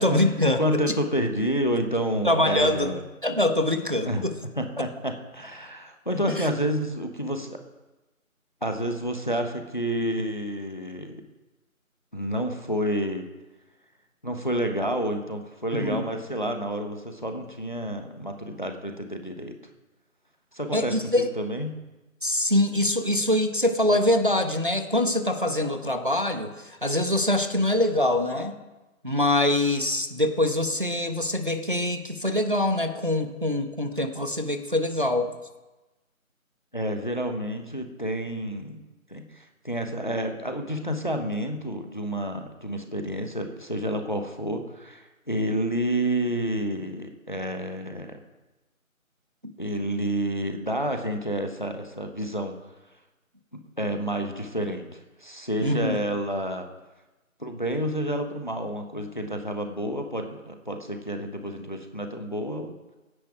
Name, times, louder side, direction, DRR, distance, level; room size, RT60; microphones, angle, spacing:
voice 1, 0.0-0.8 2.2-2.9 3.2-4.3 6.3-6.5 15.7-16.0 20.7-21.3 22.2-28.5 29.0-35.3 55.6-56.0, left 1 dB, 35° right, 7 dB, 1.0 m, -24 dB
voice 2, 0.6-3.0 4.1-4.3 4.6-7.6 8.6-11.2 12.1-13.3 14.2-19.6 20.5-21.0 21.4-21.8 36.7-38.8 39.1-48.2 49.6-52.6 53.5-56.7 57.4-62.7, equal, 35° left, 6 dB, 1.1 m, -29 dB
16.0 x 10.0 x 4.8 m, 1.1 s
figure-of-eight pair, 180°, 42 cm